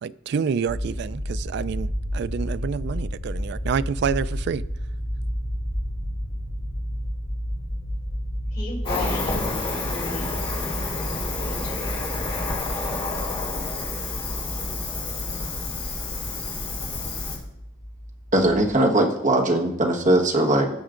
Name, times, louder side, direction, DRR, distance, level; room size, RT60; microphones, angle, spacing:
voice 1, 0.0-4.6, right 6 dB, 55° right, 0.3 m, -28 dB
sound 1, 0.7-18.7, equal, 70° left, 4.1 m, -32 dB
voice 2, 8.5-10.4 11.4-11.9, left 2 dB, 50° left, 3.8 m, -35 dB
Cricket, 8.8-17.4, left 3 dB, 30° left, 2.4 m, -29 dB
voice 3, 18.3-20.7, right 1 dB, 40° right, 1.3 m, -20 dB
17.5 x 6.4 x 2.5 m
head